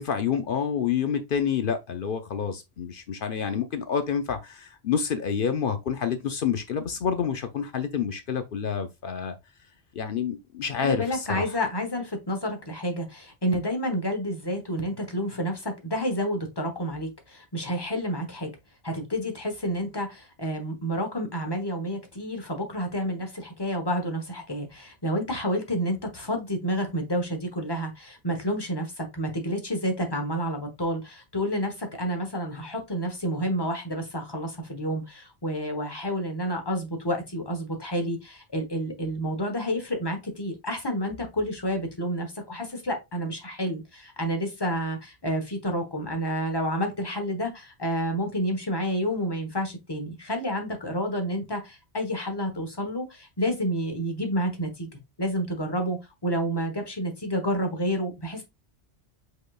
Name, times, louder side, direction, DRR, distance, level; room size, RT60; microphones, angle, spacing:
voice 1, 0.0-9.3 9.9-11.5, left 7 dB, 60° left, 0.7 m, -28 dB
voice 2, 10.8-18.5 18.8-54.9 55.2-58.4, equal, 25° left, 1.1 m, -29 dB
5.1 x 4.1 x 2.3 m
omnidirectional pair, 1.1 m